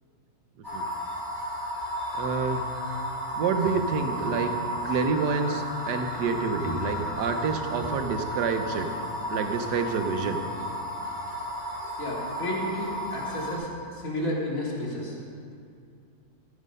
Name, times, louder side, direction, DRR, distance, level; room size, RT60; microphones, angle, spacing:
sound 1, 0.6-13.5, equal, 15° left, 3.1 m, -33 dB
voice 1, 2.1-2.6 3.4-4.5 4.8-8.9 9.3-10.4, right 5 dB, 80° right, 6 dB, 1.5 m, -28 dB
voice 2, 12.0-15.2, left 1 dB, 55° left, -3 dB, 2.5 m, -32 dB
14.5 x 7.4 x 5.4 m, 2.4 s
omnidirectional pair, 1.8 m